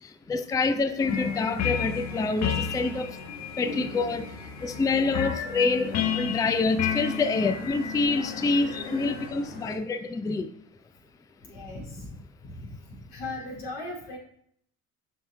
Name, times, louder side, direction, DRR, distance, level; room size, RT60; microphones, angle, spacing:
voice 1, 0.3-3.2 3.6-4.3 4.6-10.5, left 3 dB, 10° left, 10 dB, 0.4 m, -26 dB
sound 1, 1.0-9.8, left 2 dB, 90° left, 1.5 m, -42 dB
sound 2, 1.1-9.3, left 8 dB, 40° left, 0.8 m, -32 dB
voice 2, 11.5-12.7 13.1-14.2, left 2 dB, 75° left, -2 dB, 2.7 m, -38 dB
5.8 x 5.6 x 4.4 m, 0.65 s
hypercardioid pair, 70°, 42 cm